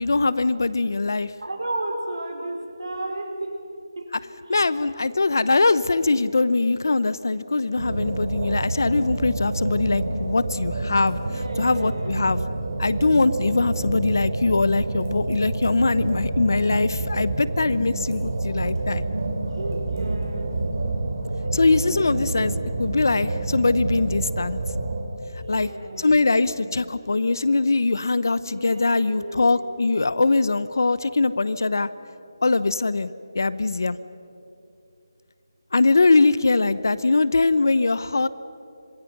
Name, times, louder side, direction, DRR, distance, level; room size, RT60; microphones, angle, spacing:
voice 1, 0.0-1.3 4.5-11.2 11.6-12.4 12.8-19.0 21.5-24.6 25.5-25.7 26.0-31.9 32.4-34.0 35.7-38.3, left 3 dB, 50° left, 16 dB, 0.8 m, -22 dB
voice 2, 1.4-3.6 4.0-4.1 4.5-4.6 11.2-12.4 19.6-20.5 21.4-21.5 22.2-22.4 25.4-26.6 28.4-29.7, right 1 dB, 80° right, 2 dB, 4.7 m, -34 dB
sound 1, 7.8-25.0, right 2 dB, 40° right, 3.2 m, -28 dB
27.0 x 26.5 x 6.0 m, 2.7 s
figure-of-eight pair, 175°, 2 cm